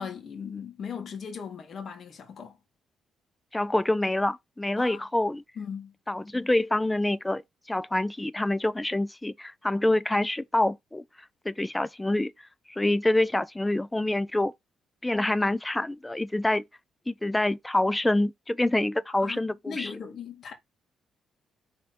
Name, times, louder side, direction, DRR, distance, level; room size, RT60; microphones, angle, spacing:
voice 1, 0.0-2.6 4.8-5.0 5.6-5.9 19.2-20.5, left 6 dB, 55° left, 2.1 m, -38 dB
voice 2, 3.5-5.4 6.1-7.4 7.7-11.0 11.4-12.3 12.7-14.5 15.0-16.6 17.1-19.9, left 1 dB, 10° left, 0.5 m, -26 dB
5.7 x 3.8 x 4.3 m
cardioid pair, 90°, 0 cm